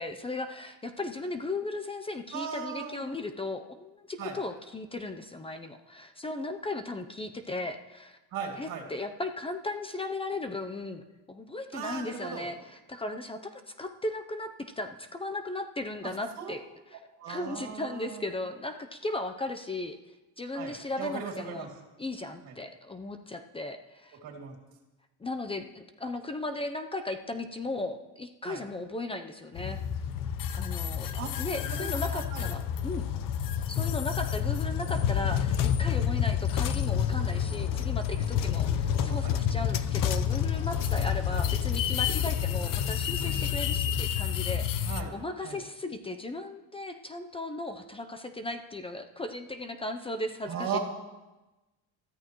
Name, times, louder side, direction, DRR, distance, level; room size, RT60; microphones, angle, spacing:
voice 1, 0.0-8.2 8.6-16.6 17.3-20.0 20.4-21.7 22.0-24.2 25.2-29.8 30.5-33.1 33.7-50.8, left 2 dB, 15° left, 7 dB, 0.6 m, -36 dB
voice 2, 2.3-3.0 4.2-4.4 8.3-8.9 11.7-12.5 16.0-16.5 17.2-18.3 20.5-21.7 22.4-22.5 24.2-24.5 28.4-28.6 31.1-31.3 31.7-32.5 36.1-36.3 38.9-39.4 41.0-41.1 43.2-43.9 44.8-45.1 45.4-45.6 50.5-50.8, right 6 dB, 60° right, 0 dB, 2.6 m, -38 dB
sound 1, 29.6-45.0, left 9 dB, 60° left, 0.9 m, -29 dB
23.0 x 13.5 x 3.1 m, 1.1 s
cardioid pair, 140°, 36 cm